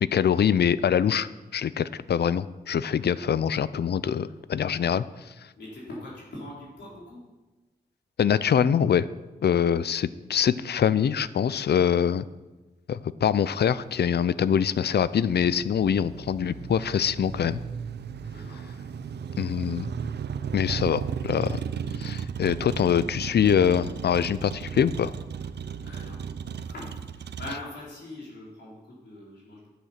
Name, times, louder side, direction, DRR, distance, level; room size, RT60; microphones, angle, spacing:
voice 1, 0.0-5.0 8.2-9.1 9.4-12.2 12.9-17.6 19.4-19.9 20.5-21.6 22.0-25.1, left 8 dB, 70° left, 17 dB, 0.5 m, -24 dB
voice 2, 5.6-7.3 18.3-18.6 25.8-26.2 26.7-29.7, left 2 dB, 90° left, -6 dB, 4.2 m, -42 dB
Motor vehicle (road), 13.5-27.5, right 7 dB, 75° right, 0.6 m, -35 dB
11.0 x 8.8 x 5.9 m, 1.1 s
cardioid pair, 50°, 17 cm